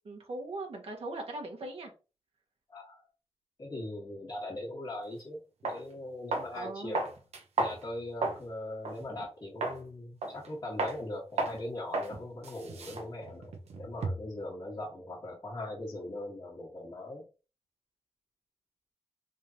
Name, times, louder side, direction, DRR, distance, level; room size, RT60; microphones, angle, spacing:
voice 1, 0.0-1.9 6.5-7.0 12.1-12.2, right 2 dB, 65° right, 1 dB, 1.3 m, -40 dB
voice 2, 2.7-3.0 3.6-7.1 7.6-17.3, left 1 dB, 35° left, -7 dB, 1.6 m, -40 dB
sound 1, 5.1-5.2 5.6-5.8 6.3-6.6 6.9-8.5 8.8-9.0 9.6-9.8 10.2-10.5 10.8-11.0 11.4-11.6 11.9-12.1 12.4-14.4, right 3 dB, 90° right, 0.9 m, -33 dB
3.7 x 3.3 x 2.8 m, 0.32 s
cardioid pair, 85°, 11 cm